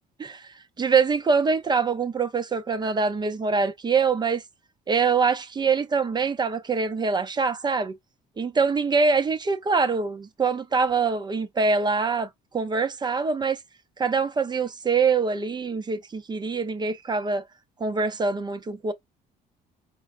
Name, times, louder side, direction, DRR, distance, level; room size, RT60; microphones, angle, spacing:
voice 1, 0.8-4.4 4.9-8.0 8.4-13.6 14.0-17.5 17.8-18.9, right 4 dB, 25° right, 0.6 m, -24 dB
4.5 x 2.0 x 2.5 m
cardioid pair, 110°, 17 cm